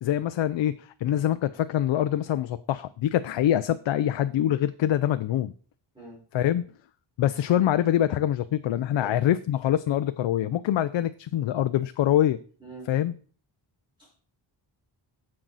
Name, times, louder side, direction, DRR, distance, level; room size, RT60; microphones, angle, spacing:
voice 1, 0.0-5.5 6.3-6.7 7.2-12.4 12.9-13.1, left 11 dB, 70° left, 11 dB, 0.6 m, -24 dB
voice 2, 5.9-6.2 9.0-9.2 12.6-12.9 14.0-14.3, right 1 dB, 10° right, -6 dB, 4.7 m, -44 dB
10.0 x 7.6 x 4.0 m, 0.43 s
wide cardioid pair, 170°, 47 cm